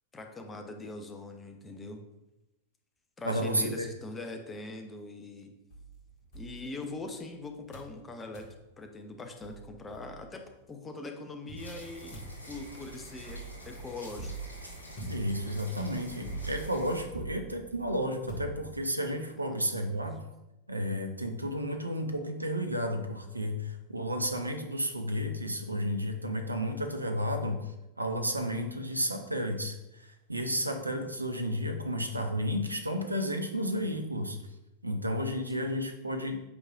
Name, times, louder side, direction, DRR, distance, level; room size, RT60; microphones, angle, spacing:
voice 1, 0.1-2.0 3.2-5.5 6.3-8.5 8.8-14.3 19.5-19.6 19.8-19.9 35.6-35.8, left 2 dB, 15° left, 5 dB, 0.8 m, -42 dB
voice 2, 3.2-3.9 15.1-20.2 20.7-34.4 34.8-36.4, equal, 85° right, 5 dB, 0.7 m, -32 dB
sound 1, 5.7-7.3 7.7-8.0 8.3-8.6 9.1-9.2 9.4-10.5 11.5-19.1, right 2 dB, 45° left, 1.9 m, -44 dB
sound 2, 11.6-17.0, right 1 dB, 80° left, 1.9 m, -47 dB
8.3 x 4.8 x 2.5 m, 0.96 s
figure-of-eight pair, 90°, 0 cm